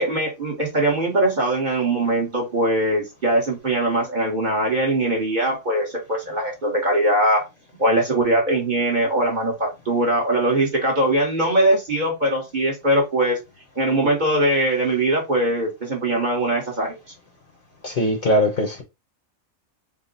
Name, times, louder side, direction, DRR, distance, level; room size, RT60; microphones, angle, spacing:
voice 1, 0.0-7.5 7.8-13.4 13.8-17.0, right 1 dB, 35° right, 1.1 m, -21 dB
voice 2, 17.8-18.8, equal, 45° left, 1.0 m, -20 dB
3.7 x 2.0 x 3.9 m
omnidirectional pair, 1.5 m